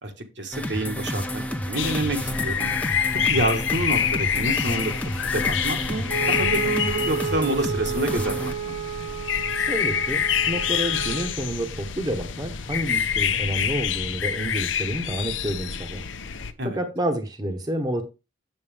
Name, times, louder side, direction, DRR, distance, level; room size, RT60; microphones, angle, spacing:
voice 1, 0.0-2.7 3.3-4.9 5.3-8.8 16.6-16.8, right 1 dB, 65° right, 4 dB, 1.5 m, -28 dB
sound 1, 0.5-8.5, equal, 10° left, 0.8 m, -31 dB
sound 2, 1.8-16.5, left 8 dB, 80° left, 0.7 m, -27 dB
Wind instrument woodwind instrument, 6.1-11.4, right 7 dB, 45° right, 1.0 m, -31 dB
voice 2, 9.6-16.1 16.7-18.0, right 1 dB, 20° right, 4 dB, 1.0 m, -29 dB
8.0 x 7.2 x 3.4 m, 0.27 s
head